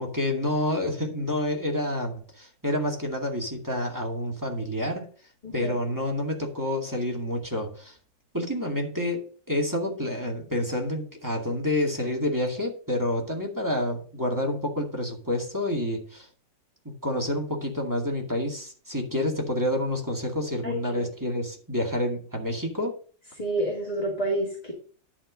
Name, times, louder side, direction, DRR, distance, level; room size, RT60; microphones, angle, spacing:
voice 1, 0.0-5.1 5.5-8.0 8.3-16.3 16.8-23.0, left 1 dB, 10° right, 0 dB, 2.1 m, -28 dB
voice 2, 5.4-5.7 20.6-21.1 23.4-24.7, right 1 dB, 20° left, -3 dB, 2.1 m, -29 dB
11.5 x 4.3 x 6.3 m, 0.41 s
omnidirectional pair, 2.0 m